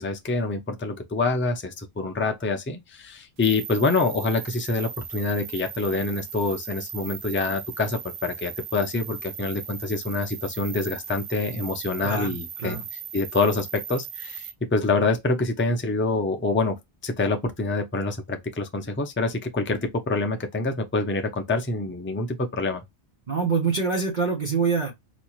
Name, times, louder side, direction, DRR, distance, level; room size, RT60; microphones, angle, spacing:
voice 1, 0.0-12.8 13.1-22.8, left 3 dB, 20° left, 0.3 m, -26 dB
sound 1, 3.4-14.5, right 8 dB, 80° right, 1.0 m, -38 dB
voice 2, 12.0-12.8 23.3-24.9, right 5 dB, 40° right, 1.0 m, -25 dB
4.2 x 3.0 x 2.4 m
omnidirectional pair, 1.2 m